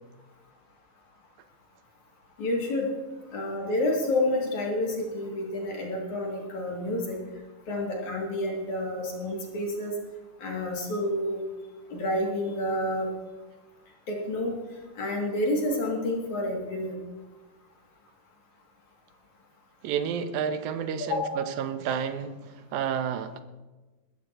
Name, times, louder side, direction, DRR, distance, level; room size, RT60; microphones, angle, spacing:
voice 1, 2.4-2.9 3.3-7.2 7.7-9.9 10.4-11.4 11.9-13.1 14.1-14.6 15.0-17.0 21.1-21.3, left 1 dB, 60° left, -1 dB, 3.9 m, -29 dB
voice 2, 19.8-23.4, right 7 dB, 70° right, 9 dB, 2.1 m, -30 dB
21.0 x 13.5 x 3.0 m, 1.2 s
omnidirectional pair, 3.9 m